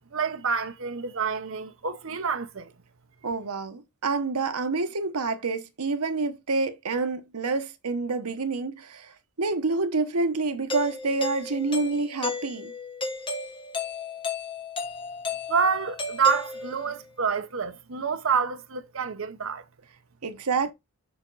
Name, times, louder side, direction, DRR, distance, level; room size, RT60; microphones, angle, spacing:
voice 1, 0.1-2.7 15.5-19.6, right 6 dB, 60° right, 0.8 m, -27 dB
voice 2, 3.2-12.7 20.2-20.7, right 3 dB, 85° right, 1.0 m, -28 dB
Doorbell, 10.7-17.0, left 3 dB, 25° left, 1.2 m, -34 dB
6.9 x 5.0 x 3.9 m
head